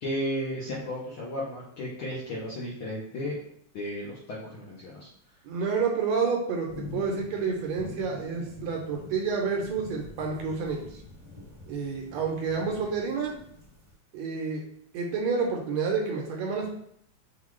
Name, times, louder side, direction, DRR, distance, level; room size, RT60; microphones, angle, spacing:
voice 1, 0.0-3.4 3.7-5.1, equal, 70° left, -6 dB, 1.3 m, -34 dB
voice 2, 5.5-11.0 11.7-13.3 14.1-14.6 14.9-16.7, right 5 dB, 75° right, 1 dB, 1.8 m, -29 dB
sound 1, 6.7-13.9, left 3 dB, 20° right, 0.9 m, -46 dB
5.7 x 2.3 x 3.1 m, 0.69 s
omnidirectional pair, 3.3 m